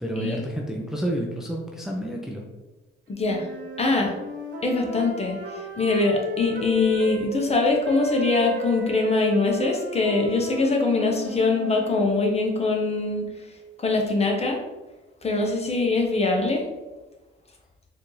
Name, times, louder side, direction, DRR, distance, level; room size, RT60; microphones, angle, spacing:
voice 1, 0.0-2.4, right 1 dB, ahead, -1 dB, 0.5 m, -29 dB
voice 2, 3.1-3.5 3.8-4.1 4.6-13.3 13.8-14.6 15.2-16.6, left 3 dB, 30° left, 1 dB, 0.9 m, -23 dB
Flute - C major - legato-bad-tempo, 3.2-7.3 7.8-12.1, equal, 65° right, 0.9 m, -35 dB
4.2 x 2.6 x 3.2 m, 1.1 s
cardioid pair, 80°, 21 cm